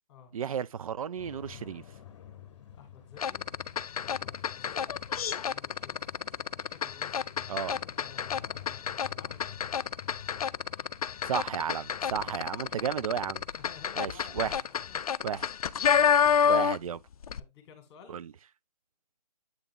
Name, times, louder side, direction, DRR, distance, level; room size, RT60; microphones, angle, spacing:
voice 1, 0.3-1.8 7.5-7.7 11.2-13.4 14.0-14.5 15.2-15.5 16.5-17.0 18.1-18.3, right 8 dB, 55° right, 0.4 m, -33 dB
sound 1, 1.2-14.3, left 9 dB, 45° left, 0.9 m, -50 dB
voice 2, 2.7-3.5 4.0-5.0 5.5-6.1 6.5-9.5 12.2-13.0 13.6-15.5 15.8-16.5 17.4-18.2, left 8 dB, 20° left, 2.2 m, -54 dB
sound 2, 3.2-17.0 17.2-17.4, left 7 dB, 60° left, 0.4 m, -29 dB
8.2 x 3.5 x 3.6 m
figure-of-eight pair, 145°, 21 cm